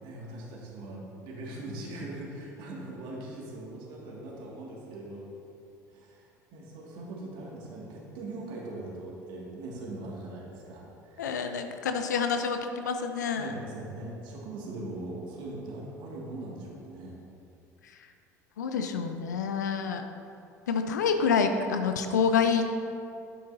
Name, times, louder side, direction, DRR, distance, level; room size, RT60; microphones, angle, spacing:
voice 1, 0.0-5.3 5.9-11.3 13.3-17.2, right 2 dB, 55° right, -3 dB, 2.2 m, -41 dB
voice 2, 11.2-13.5 18.6-20.0 20.7-22.7, left 6 dB, 75° left, 7 dB, 0.6 m, -27 dB
11.5 x 8.6 x 2.8 m, 2.6 s
figure-of-eight pair, 65°, 10 cm